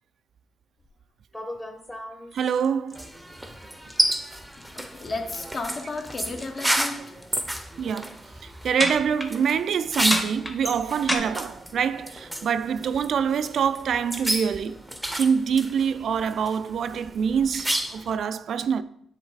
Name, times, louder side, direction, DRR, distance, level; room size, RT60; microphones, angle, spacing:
sound 1, 0.8-0.9 1.3-3.0 3.4-3.6 3.9-4.1 4.4-4.7 5.0-7.0 7.2-7.7 8.8-9.3 10.1-11.2, left 1 dB, 15° left, 1.0 m, -31 dB
voice 1, 2.3-3.1 7.8-8.1 8.4-14.8 15.1-18.8, right 7 dB, 60° right, 0.3 m, -25 dB
sound 2, 2.9-18.2, right 1 dB, 5° right, 0.7 m, -31 dB
voice 2, 4.6-7.2, left 3 dB, 45° left, 0.9 m, -34 dB
7.4 x 3.2 x 4.8 m
cardioid pair, 90°, 0 cm